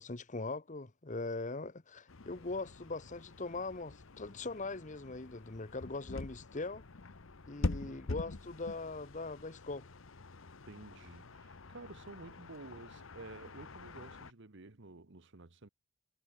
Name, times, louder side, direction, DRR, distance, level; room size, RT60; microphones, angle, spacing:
voice 1, 0.0-6.8 7.5-9.9, left 3 dB, 35° left, 1.1 m, -41 dB
sound 1, 2.1-14.3, left 2 dB, 70° left, 1.0 m, -45 dB
voice 2, 7.6-8.1 10.6-15.7, right 2 dB, 60° right, 1.3 m, -52 dB
head